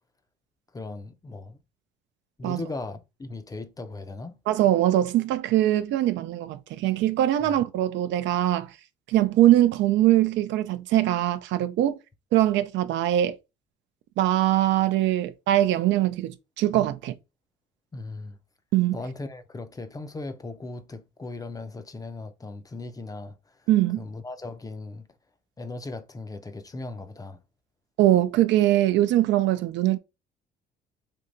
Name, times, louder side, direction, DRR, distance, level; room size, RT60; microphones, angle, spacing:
voice 1, 0.7-1.6 2.4-4.4 7.4-7.5 17.9-18.4 18.9-23.7 24.0-25.1 25.6-27.4, left 2 dB, 20° left, 0.5 m, -38 dB
voice 2, 4.5-8.7 9.1-12.0 12.3-13.4 14.2-17.1 18.7-19.0 23.7-24.1 28.0-30.0, right 13 dB, 70° right, 0.4 m, -22 dB
3.4 x 2.8 x 2.6 m
cardioid pair, 90°, 19 cm